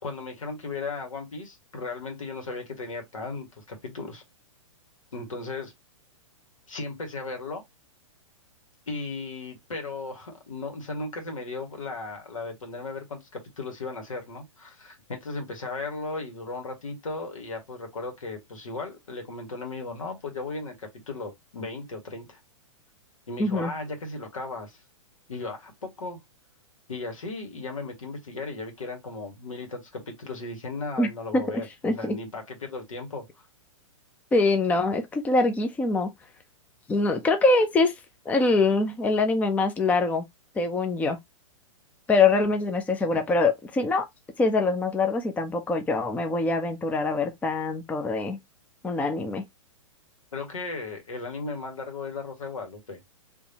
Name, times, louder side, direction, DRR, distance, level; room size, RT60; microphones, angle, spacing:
voice 1, 0.0-4.2 5.1-5.7 6.7-7.6 8.9-22.4 23.3-24.8 25.3-26.2 26.9-33.2 50.3-53.0, left 3 dB, 85° left, 1.8 m, -36 dB
voice 2, 23.4-23.7 31.0-31.4 31.8-32.2 34.3-36.1 36.9-37.9 38.3-40.2 40.6-41.2 42.1-44.1 44.4-48.4 48.8-49.4, left 3 dB, 10° left, 0.5 m, -24 dB
3.5 x 3.1 x 2.8 m
hypercardioid pair, 125°, 17 cm